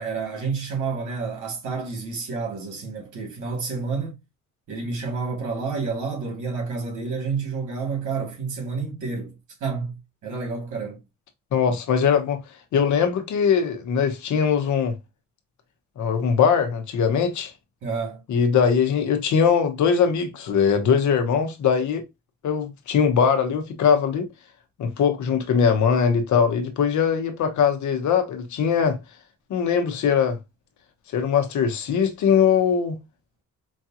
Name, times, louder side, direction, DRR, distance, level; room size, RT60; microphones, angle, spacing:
voice 1, 0.0-4.2 4.7-9.3 9.6-11.0 17.8-18.2, right 4 dB, 80° right, 2.3 m, -29 dB
voice 2, 11.5-12.4 12.7-15.0 16.0-17.5 18.3-22.0 22.4-24.3 24.8-29.0 29.5-30.4 31.1-33.0, left 7 dB, 70° left, 1.1 m, -21 dB
5.1 x 2.4 x 2.9 m
cardioid pair, 90°, 30 cm